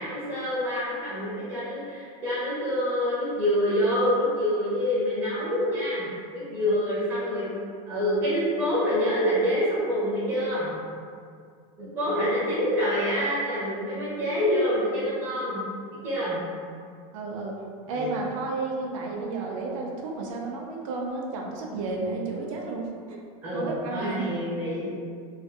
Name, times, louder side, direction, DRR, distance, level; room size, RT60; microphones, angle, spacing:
voice 1, 0.0-7.5 7.9-10.7 11.8-15.6 16.0-16.4 17.9-18.1 23.4-24.9, equal, 10° right, -10 dB, 0.8 m, -26 dB
voice 2, 11.8-12.3 17.1-17.6 17.9-23.2 23.5-24.3, right 3 dB, 75° right, -1 dB, 0.4 m, -32 dB
2.5 x 2.3 x 2.5 m, 2.2 s
supercardioid pair, 170°, 17 cm